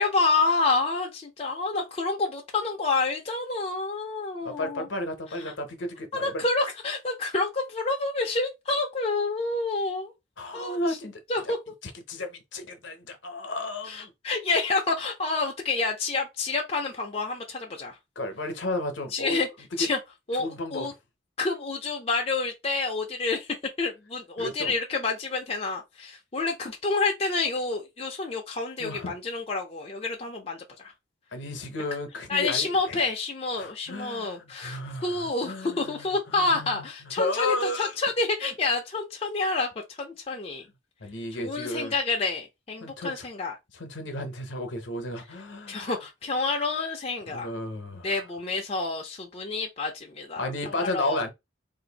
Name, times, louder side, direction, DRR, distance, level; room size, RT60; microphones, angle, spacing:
voice 1, 0.0-4.9 6.1-10.1 10.5-11.0 11.3-11.6 13.9-18.0 19.1-19.5 19.8-20.0 20.3-20.9 21.4-30.9 32.3-40.6 41.4-43.5 45.7-47.5 48.0-50.5 50.8-51.3, left 3 dB, 30° left, 0.5 m, -28 dB
voice 2, 4.4-6.4 10.4-11.5 11.8-14.1 18.2-19.4 19.8-19.9 20.3-20.9 24.4-24.8 28.8-29.1 31.3-33.0 33.6-36.8 37.2-38.0 38.4-38.5 41.0-42.0 42.8-43.3 43.7-46.0 47.3-48.2 50.4-51.3, left 1 dB, 70° left, 0.8 m, -33 dB
2.6 x 2.5 x 3.9 m
head